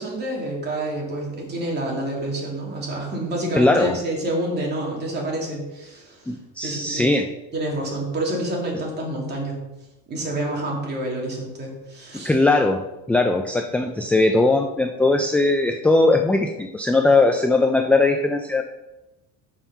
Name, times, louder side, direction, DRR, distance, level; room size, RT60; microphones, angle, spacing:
voice 1, 0.0-6.3 6.6-7.1 7.5-9.6 10.1-12.3, right 1 dB, 30° right, -2 dB, 2.7 m, -28 dB
voice 2, 3.5-4.0 6.3-7.3 12.2-12.8 13.1-18.6, left 2 dB, 5° left, 4 dB, 0.3 m, -19 dB
7.2 x 5.5 x 5.6 m, 1.0 s
cardioid pair, 135°, 32 cm